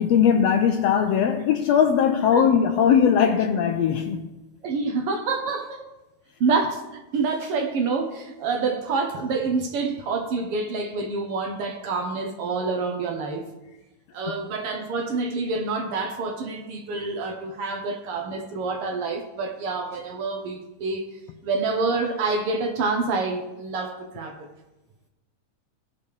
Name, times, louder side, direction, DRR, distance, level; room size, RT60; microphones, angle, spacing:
voice 1, 0.0-4.3, left 8 dB, 80° left, 5 dB, 1.5 m, -20 dB
voice 2, 4.6-5.8 6.4-13.5 14.1-21.2 21.4-24.5, right 4 dB, 65° right, 4 dB, 1.5 m, -27 dB
19.5 x 6.9 x 3.2 m, 1.1 s
omnidirectional pair, 3.6 m